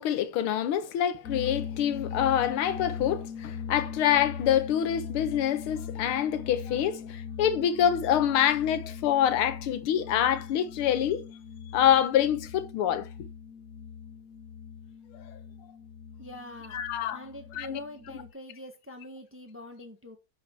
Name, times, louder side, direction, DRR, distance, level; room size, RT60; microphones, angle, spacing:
voice 1, 0.0-11.2 11.7-13.1 16.7-17.2 17.6-17.8, left 10 dB, 90° left, 1.8 m, -26 dB
sound 1, 1.2-18.3, left 7 dB, 55° left, 1.2 m, -40 dB
voice 2, 16.2-16.8 17.1-20.2, left 1 dB, 10° right, 1.0 m, -44 dB
10.5 x 4.9 x 4.5 m
omnidirectional pair, 2.3 m